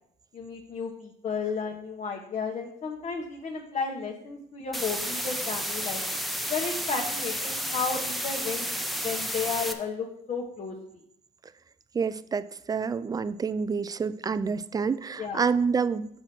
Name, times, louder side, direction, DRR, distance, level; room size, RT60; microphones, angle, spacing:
voice 1, 0.3-6.0 6.5-8.7 9.0-10.8 15.2-15.5, left 5 dB, 40° left, 0 dB, 1.2 m, -33 dB
sound 1, 4.7-9.7, equal, ahead, 0.8 m, -31 dB
voice 2, 11.9-16.1, right 5 dB, 20° right, 14 dB, 0.4 m, -28 dB
7.7 x 6.1 x 4.5 m, 0.73 s
cardioid pair, 110°, 17 cm